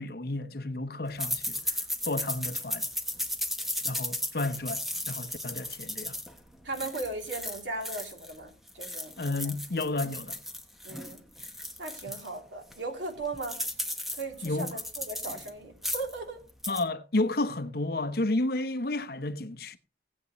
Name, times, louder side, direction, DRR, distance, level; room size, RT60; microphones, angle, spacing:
voice 1, 0.0-1.8 2.1-2.9 3.8-4.8 5.1-6.2 9.2-10.4 14.4-14.7 16.7-19.8, left 2 dB, 55° left, 0.9 m, -31 dB
sound 1, 1.2-8.4 8.7-12.3 12.7-12.8 13.1-15.5 15.8-16.2 16.5-16.8, left 1 dB, ahead, 1.1 m, -35 dB
voice 2, 6.6-9.2 10.8-11.2 11.8-13.6 14.1-16.4, right 3 dB, 85° right, 3.1 m, -37 dB
18.0 x 8.3 x 3.1 m
head